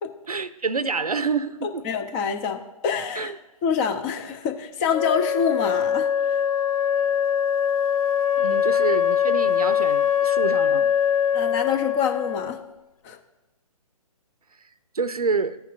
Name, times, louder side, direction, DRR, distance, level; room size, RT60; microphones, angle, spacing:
voice 1, 0.3-1.9 3.1-3.4 8.4-10.9 14.9-15.6, right 4 dB, 80° right, 0.6 m, -27 dB
voice 2, 1.6-3.3 3.6-6.4 11.3-12.6 13.0-13.2, left 6 dB, 20° left, 0.6 m, -26 dB
Wind instrument woodwind instrument, 4.9-12.6, left 9 dB, 70° left, 0.4 m, -22 dB
15.0 x 5.3 x 2.5 m
figure-of-eight pair, 135°, 19 cm